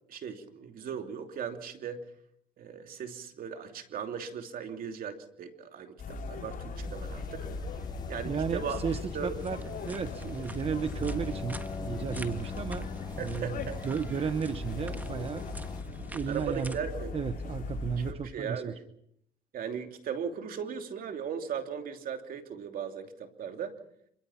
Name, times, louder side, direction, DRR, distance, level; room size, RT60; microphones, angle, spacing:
voice 1, 0.1-2.0 2.6-7.5 8.1-8.8 9.1-9.3 13.2-13.8 14.2-14.3 16.3-17.1 18.1-18.8 19.5-23.7, right 7 dB, 55° right, 5 dB, 2.9 m, -38 dB
sound 1, 6.0-18.1, left 3 dB, 55° left, 6.6 m, -39 dB
sound 2, 6.7-15.8, left 5 dB, 25° left, 1.0 m, -42 dB
voice 2, 8.2-15.6 16.0-16.8 17.1-18.7, right 6 dB, 35° right, 10 dB, 1.1 m, -34 dB
sound 3, 9.4-16.8, right 2 dB, 10° right, 1.5 m, -49 dB
26.5 x 23.0 x 5.8 m, 0.71 s
cardioid pair, 110°, 17 cm